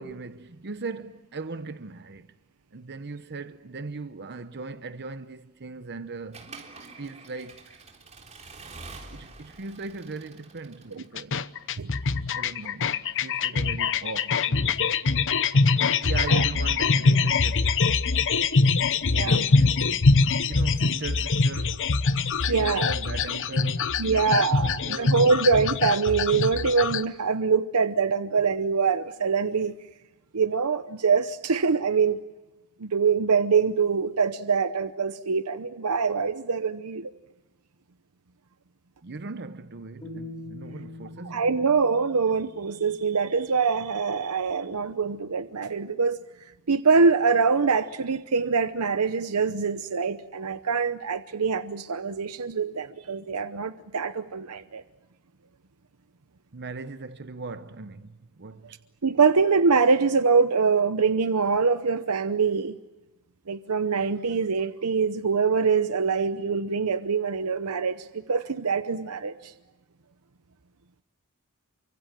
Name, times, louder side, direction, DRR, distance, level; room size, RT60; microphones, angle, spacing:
voice 1, 0.0-2.3 2.7-6.6 6.9-7.8 9.1-11.4 12.3-15.0 16.0-17.8 19.2-21.9 22.5-25.3 39.0-41.5 56.5-58.8, right 3 dB, 50° right, 0.9 m, -39 dB
Accelerating revving vroom / Mechanisms, 6.3-11.2, right 3 dB, 30° right, 3.7 m, -46 dB
sound 1, 11.2-27.0, left 4 dB, 60° left, 0.9 m, -23 dB
voice 2, 22.5-22.9 24.0-29.8 30.3-32.2 32.8-37.1 41.2-46.2 46.7-54.8 59.0-62.8 63.5-69.5, right 5 dB, 80° right, 0.8 m, -24 dB
sound 2, 40.0-43.1, left 2 dB, 25° left, 5.7 m, -43 dB
28.5 x 25.0 x 7.5 m
head